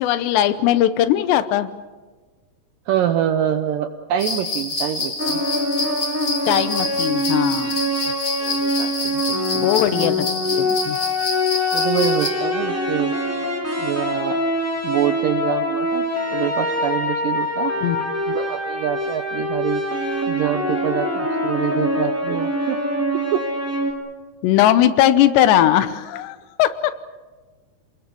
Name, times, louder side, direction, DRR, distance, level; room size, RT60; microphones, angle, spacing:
voice 1, 0.0-1.7 6.5-7.8 9.6-11.0 17.8-18.1 24.4-27.0, left 12 dB, 85° left, 12 dB, 3.1 m, -19 dB
voice 2, 2.9-5.4 8.1-8.2 8.4-9.2 9.5-9.7 10.0-10.1 11.7-13.1 13.8-14.4 14.8-16.1 16.3-17.7 18.3-19.8 20.3-22.8 23.3-23.5, right 10 dB, 75° right, 8 dB, 2.0 m, -25 dB
sound 1, 4.2-12.3, left 3 dB, 35° left, 3.6 m, -27 dB
sound 2, 5.2-23.9, left 1 dB, 5° right, 2.2 m, -24 dB
28.0 x 21.0 x 7.0 m, 1.3 s
omnidirectional pair, 4.8 m